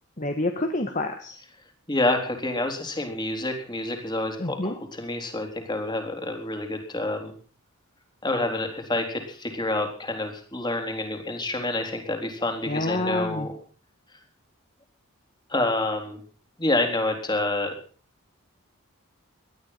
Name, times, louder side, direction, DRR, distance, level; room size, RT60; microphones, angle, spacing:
voice 1, 0.2-1.4 4.4-4.7 12.6-13.5, left 2 dB, 35° left, 5 dB, 1.7 m, -28 dB
voice 2, 1.9-7.3 8.2-13.5 15.5-16.2 16.6-17.7, left 2 dB, 20° left, 5 dB, 3.7 m, -28 dB
19.0 x 13.0 x 5.7 m, 0.42 s
head